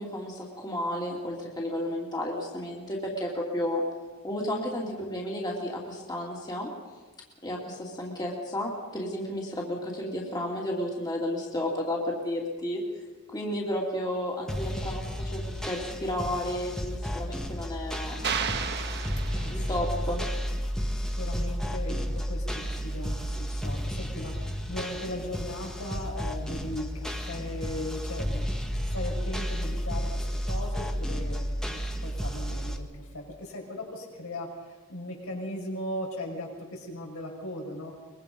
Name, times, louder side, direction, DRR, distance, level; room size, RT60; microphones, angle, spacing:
voice 1, 0.0-3.8 4.2-6.7 7.4-12.8 13.3-18.2 19.5-20.2, left 1 dB, 20° left, -2 dB, 2.9 m, -32 dB
sound 1, 14.5-32.8, equal, 5° left, 1.6 m, -32 dB
sound 2, 18.2-20.0, right 6 dB, 50° right, 1.4 m, -32 dB
voice 2, 19.3-19.8 20.2-20.3 21.0-37.9, left 1 dB, 70° left, 0 dB, 5.8 m, -38 dB
23.5 x 22.0 x 5.4 m, 1.3 s
head